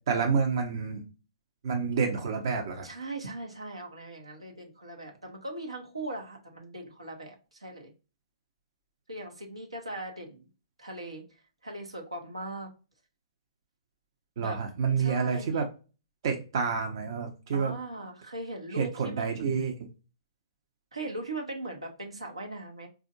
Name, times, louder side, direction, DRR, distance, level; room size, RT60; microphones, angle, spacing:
voice 1, 0.1-1.0 1.6-2.9 14.4-15.7 16.2-17.7 18.7-19.9, right 5 dB, 55° right, 3 dB, 0.7 m, -28 dB
voice 2, 2.8-7.9 9.1-10.5 10.8-11.2 11.6-12.7 14.4-14.6 14.9-15.6 17.5-19.5 20.9-22.9, right 2 dB, 85° right, 1 dB, 1.0 m, -39 dB
4.2 x 2.4 x 2.4 m, 0.33 s
figure-of-eight pair, 120°, 3 cm